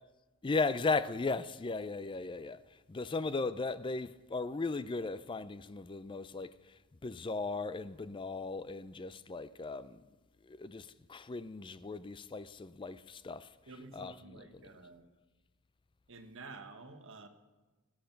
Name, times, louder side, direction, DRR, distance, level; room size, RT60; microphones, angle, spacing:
voice 1, 0.4-10.0 10.4-13.5 13.9-14.6, left 3 dB, 20° left, 0.4 m, -37 dB
voice 2, 13.7-15.1 16.1-17.3, right 3 dB, 60° right, 1.3 m, -50 dB
17.0 x 8.8 x 5.8 m
head